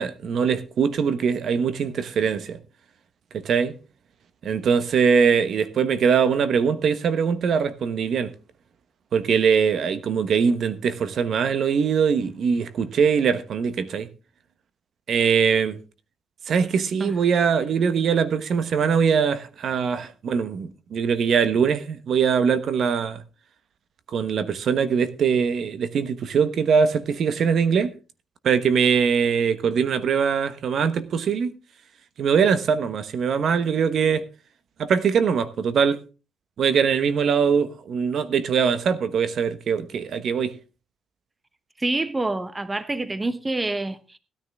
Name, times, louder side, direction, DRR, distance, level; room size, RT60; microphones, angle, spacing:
voice 1, 0.0-2.6 3.3-3.7 4.4-8.3 9.1-14.1 15.1-15.8 16.5-23.2 24.1-27.9 28.4-31.5 32.2-34.3 34.8-36.0 36.6-40.5, right 6 dB, 60° right, 1.1 m, -22 dB
voice 2, 41.8-44.2, right 2 dB, 20° right, 0.9 m, -27 dB
16.0 x 9.8 x 3.5 m
cardioid pair, 90°, 0 cm